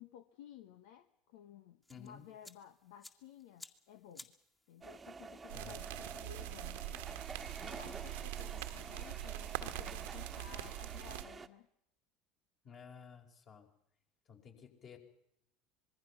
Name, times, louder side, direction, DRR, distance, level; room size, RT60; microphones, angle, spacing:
voice 1, 0.0-4.3 4.7-7.0 7.6-11.7, left 10 dB, 65° left, 10 dB, 1.1 m, -56 dB
sound 1, 1.8-8.3, left 1 dB, 15° left, 2.1 m, -60 dB
voice 2, 1.9-2.2 5.5-6.0 12.6-13.7 14.3-15.0, left 6 dB, 40° left, 2 dB, 5.0 m, -54 dB
sound 2, 4.8-11.5, right 4 dB, 20° right, 1.5 m, -49 dB
sound 3, 5.5-11.2, right 14 dB, 70° right, 1.5 m, -43 dB
26.0 x 21.5 x 5.9 m, 0.78 s
figure-of-eight pair, 75°, 0 cm